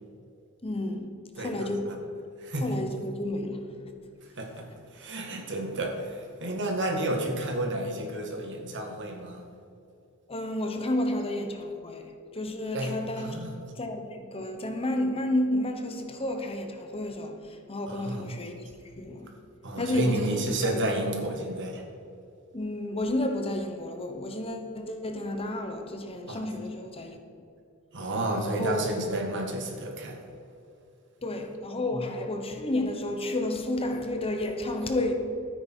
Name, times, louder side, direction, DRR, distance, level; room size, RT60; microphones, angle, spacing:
voice 1, 0.6-1.9 2.6-3.9 10.3-13.5 13.7-18.6 19.0-19.4 19.8-20.7 22.5-27.2 28.4-28.8 31.2-35.1, left 1 dB, 25° left, 1.0 m, -31 dB
voice 2, 1.4-2.0 2.4-2.7 4.2-9.5 12.7-13.6 17.9-18.3 19.6-21.9 26.3-26.4 27.9-30.2 31.9-32.0, right 1 dB, 55° right, 1.8 m, -31 dB
13.0 x 9.7 x 4.5 m
head